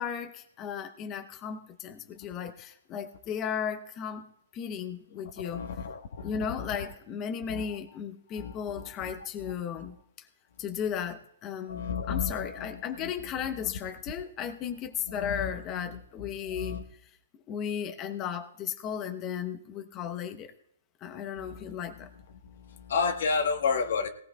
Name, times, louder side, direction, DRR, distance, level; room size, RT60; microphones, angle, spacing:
voice 1, 0.0-4.2 4.5-5.6 6.2-10.3 10.6-17.1 17.5-20.5 21.0-22.1, left 8 dB, 25° left, 7 dB, 0.9 m, -35 dB
voice 2, 5.4-6.3 6.6-6.7 7.5-7.8 8.4-9.1 9.4-9.5 9.8-9.9 11.7-13.1 13.6-13.7 15.1-16.8 21.4-22.1 22.4-24.1, left 5 dB, 70° left, 6 dB, 1.3 m, -33 dB
19.0 x 17.5 x 2.4 m, 0.74 s
hypercardioid pair, 145°, 0 cm